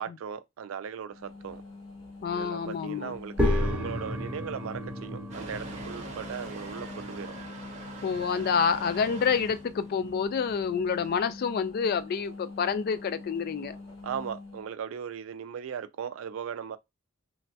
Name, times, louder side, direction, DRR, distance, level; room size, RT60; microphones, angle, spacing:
voice 1, 0.0-1.6 2.3-7.3 14.0-16.8, right 7 dB, 75° right, 0.4 m, -38 dB
sound 1, 1.1-14.7, left 3 dB, 80° left, 1.2 m, -44 dB
voice 2, 2.2-3.2 8.0-13.8, left 6 dB, 50° left, 0.3 m, -28 dB
sound 2, 3.4-10.1, left 1 dB, 5° right, 0.7 m, -34 dB
Motor vehicle (road) / Engine starting / Accelerating revving vroom, 5.3-11.2, right 3 dB, 35° right, 0.8 m, -44 dB
3.1 x 2.2 x 2.7 m
head